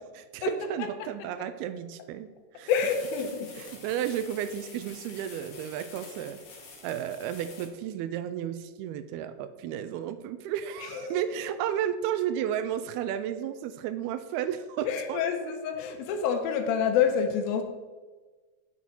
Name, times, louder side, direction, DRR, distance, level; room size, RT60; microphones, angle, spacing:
voice 1, 0.2-2.7 3.6-6.4 6.8-15.5, right 10 dB, 80° right, 11 dB, 2.4 m, -33 dB
voice 2, 2.7-3.5 10.9-11.2 14.9-17.6, left 7 dB, 80° left, 6 dB, 2.3 m, -27 dB
sound 1, 2.7-7.7, left 4 dB, 55° left, 1.6 m, -47 dB
8.5 x 7.2 x 4.4 m, 1.3 s
omnidirectional pair, 4.6 m